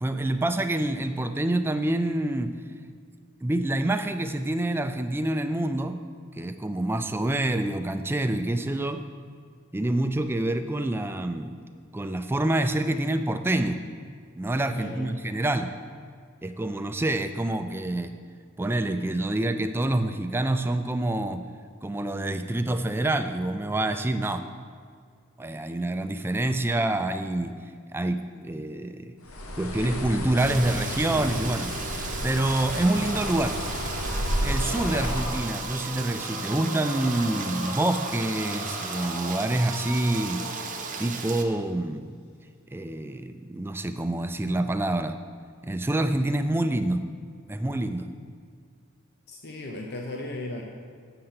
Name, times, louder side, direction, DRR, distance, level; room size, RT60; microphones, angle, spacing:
voice 1, 0.0-2.5 3.4-6.0 6.4-9.0 9.7-11.6 11.9-13.8 14.4-15.7 16.4-18.1 18.6-21.4 21.8-24.5 25.4-27.6 27.9-29.1 29.6-31.7 32.2-33.6 34.4-40.4 41.0-42.1 42.7-45.2 45.6-47.0 47.5-48.1, right 1 dB, 10° right, 8 dB, 0.3 m, -27 dB
voice 2, 14.7-15.2 49.3-50.6, left 1 dB, 50° left, 1 dB, 0.7 m, -36 dB
Bird, 29.2-35.5, equal, 85° left, 0.9 m, -31 dB
Rain, 30.4-41.4, right 6 dB, 40° right, 0.7 m, -37 dB
sound 1, 32.4-41.3, equal, 65° left, 1.9 m, -38 dB
7.8 x 6.7 x 5.7 m, 2.1 s
head